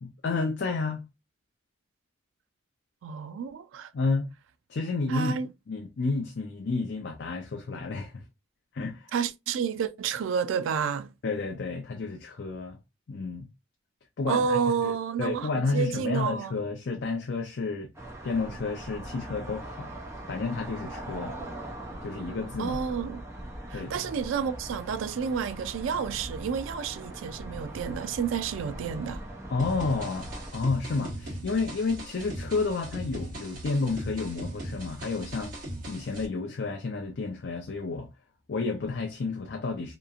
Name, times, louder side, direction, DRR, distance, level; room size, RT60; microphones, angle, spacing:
voice 1, 0.0-1.0 3.9-4.3 4.7-5.4 5.7-8.1 8.7-9.1 11.2-12.8 13.1-13.5 14.2-14.9 15.2-17.9 18.2-19.9 20.3-21.3 22.0-22.8 23.7-24.0 29.5-35.6 35.9-38.1 38.5-39.9, left 3 dB, 60° left, 0.4 m, -31 dB
voice 2, 3.0-3.9 5.1-5.5 9.1-11.1 14.3-16.6 22.6-23.2 23.7-29.2, right 6 dB, 90° right, 0.3 m, -30 dB
sound 1, 17.9-30.5, right 1 dB, 15° right, 0.5 m, -40 dB
sound 2, 29.6-36.3, right 1 dB, 45° right, 1.3 m, -39 dB
2.9 x 2.4 x 2.4 m
head